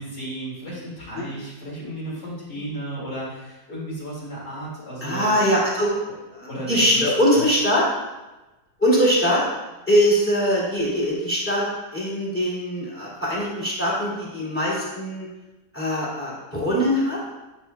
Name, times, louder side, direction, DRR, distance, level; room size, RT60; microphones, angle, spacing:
voice 1, 0.0-5.4 6.4-7.1 7.3-7.5, right 1 dB, 60° left, -9 dB, 2.9 m, -34 dB
voice 2, 5.0-5.9 6.7-7.8 8.8-9.4 9.9-11.6 11.9-15.3 15.7-17.2, equal, 5° left, -7 dB, 2.4 m, -22 dB
10.0 x 5.9 x 2.3 m, 1.1 s
omnidirectional pair, 2.0 m